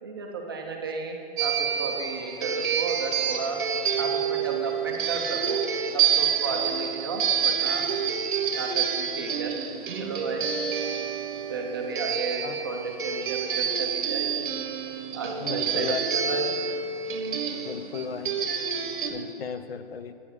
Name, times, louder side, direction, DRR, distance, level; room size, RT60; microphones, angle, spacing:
voice 1, 0.0-3.6 4.0-5.6 5.9-7.8 8.5-9.5 10.0-10.5 11.5-14.4 15.1-16.5, right 4 dB, 25° right, 1 dB, 0.5 m, -33 dB
sound 1, 1.4-19.1, right 7 dB, 55° right, 0.9 m, -28 dB
voice 2, 15.4-16.0 17.6-18.3 19.1-20.1, left 6 dB, 70° left, 10 dB, 0.6 m, -34 dB
8.6 x 7.0 x 4.7 m, 2.6 s
hypercardioid pair, 165°, 31 cm